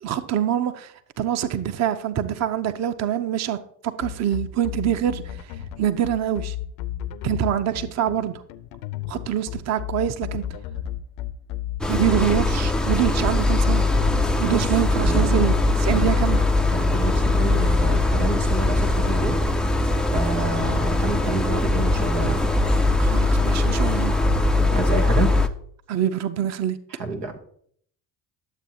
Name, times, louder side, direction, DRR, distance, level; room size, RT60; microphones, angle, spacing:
voice 1, 0.0-3.6 3.8-5.5 5.8-6.5 7.2-8.4 9.1-10.4 11.9-13.9 14.4-16.5 23.0-24.1 25.9-26.8, right 10 dB, 35° right, 12 dB, 0.7 m, -25 dB
sound 1, 4.0-17.7, left 12 dB, 65° left, 0.7 m, -33 dB
sound 2, 11.8-25.5, left 2 dB, ahead, 0.3 m, -21 dB
voice 2, 15.0-15.5 15.9-16.1 16.7-19.4 20.1-22.4 24.7-25.3 27.0-27.3, right 3 dB, 90° right, 4 dB, 1.0 m, -28 dB
11.0 x 7.5 x 2.8 m, 0.64 s
hypercardioid pair, 55°, 48 cm